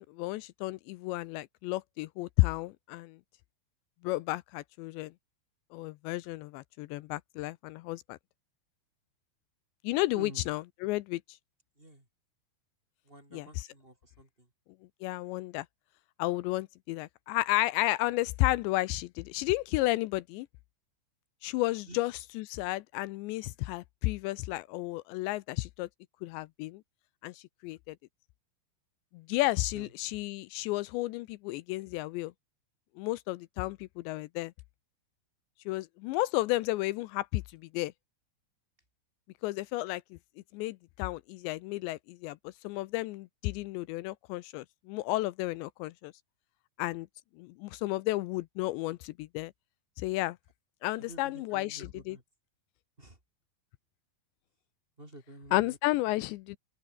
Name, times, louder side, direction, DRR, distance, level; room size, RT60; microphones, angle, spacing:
voice 1, 0.0-3.2 4.0-5.1 5.7-8.2 9.8-11.2 13.3-13.7 15.0-15.7 16.2-20.5 21.4-25.9 26.2-26.8 27.2-28.0 29.1-32.3 33.0-34.5 35.7-37.9 39.4-40.2 40.5-46.1 46.8-47.1 47.4-49.5 50.0-50.4 50.8-52.2 55.5-56.6, left 19 dB, 80° left, 2.6 m, -32 dB
voice 2, 10.1-10.5 11.8-12.0 13.0-14.5 21.9-22.0 29.7-29.9 51.1-52.2 53.0-53.2 55.0-55.8, right 1 dB, 10° right, 4.6 m, -49 dB
omnidirectional pair, 5.7 m